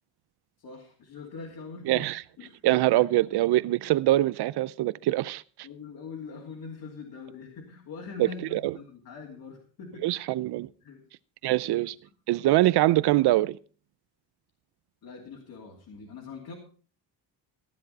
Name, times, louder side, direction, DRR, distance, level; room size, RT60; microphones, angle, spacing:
voice 1, 0.6-2.0 2.4-2.6 5.6-10.2 10.8-11.0 11.5-11.9 15.0-16.5, left 5 dB, 55° left, 2.9 m, -43 dB
voice 2, 1.9-2.2 2.6-5.7 8.2-8.7 10.0-10.7 11.4-12.0 12.3-13.6, right 16 dB, 65° right, 0.6 m, -24 dB
15.5 x 10.5 x 4.1 m
cardioid pair, 170°, 43 cm